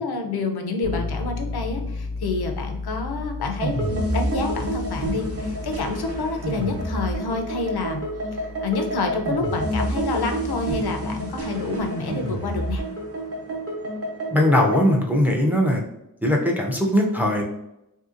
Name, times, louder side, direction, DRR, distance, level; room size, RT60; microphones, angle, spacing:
voice 1, 0.0-8.0 8.3-12.8, left 3 dB, 80° left, 4 dB, 0.5 m, -28 dB
sound 1, 0.8-10.6, left 3 dB, 75° right, 1.0 m, -35 dB
sound 2, 3.6-14.9, right 1 dB, 40° right, 0.8 m, -28 dB
voice 2, 14.3-15.8 16.2-17.4, left 1 dB, 5° right, 0 dB, 0.4 m, -20 dB
2.7 x 2.7 x 2.5 m, 0.86 s
wide cardioid pair, 85°, 38 cm